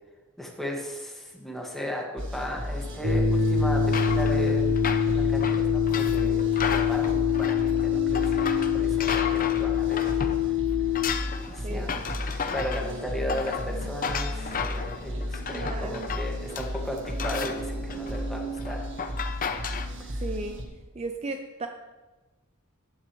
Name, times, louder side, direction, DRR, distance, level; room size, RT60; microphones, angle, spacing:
voice 1, 0.4-4.8 5.1-10.0 10.4-10.5 11.5-18.8 20.0-20.2, left 1 dB, ahead, -1 dB, 1.8 m, -36 dB
sound 1, 2.2-20.6, equal, 60° right, 1.5 m, -34 dB
sound 2, 3.0-11.1, left 7 dB, 80° right, 0.9 m, -24 dB
sound 3, 3.9-10.5 10.7-19.9, left 6 dB, 40° left, 0.7 m, -34 dB
voice 2, 11.6-11.9 15.5-16.1 20.2-20.6 21.0-21.7, right 3 dB, 30° right, 5 dB, 0.6 m, -35 dB
14.5 x 9.9 x 3.2 m, 1.2 s
head